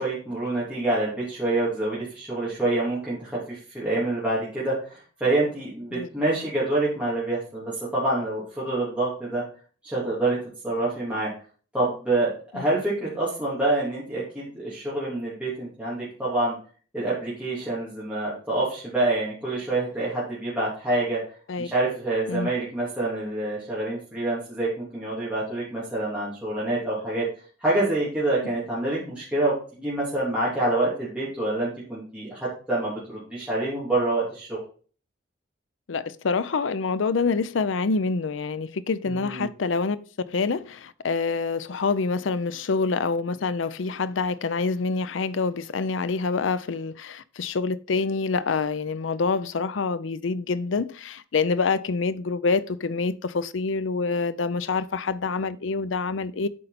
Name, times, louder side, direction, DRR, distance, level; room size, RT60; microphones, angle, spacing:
voice 1, 0.0-9.4 9.8-10.4 10.6-11.3 11.7-16.5 16.9-21.2 21.6-27.3 27.6-34.6 39.0-39.5, right 2 dB, 5° right, 3.0 m, -27 dB
voice 2, 35.9-56.5, left 4 dB, 85° left, 0.5 m, -26 dB
8.6 x 5.2 x 4.2 m
head